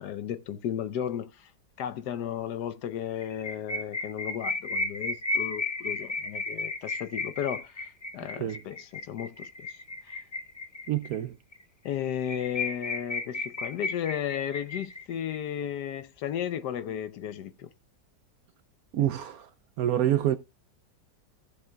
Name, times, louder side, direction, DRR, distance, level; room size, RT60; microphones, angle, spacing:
voice 1, 0.0-1.5 1.8-9.8 10.0-10.2 11.8-17.7, left 9 dB, 70° left, 1.2 m, -34 dB
sound 1, 3.2-11.2 11.5-11.6 11.9-12.0 12.2-15.4, left 2 dB, 35° left, 0.4 m, -33 dB
voice 2, 10.9-11.4 18.9-19.5 19.8-20.4, right 11 dB, 70° right, 0.9 m, -26 dB
15.0 x 6.8 x 2.2 m
omnidirectional pair, 1.9 m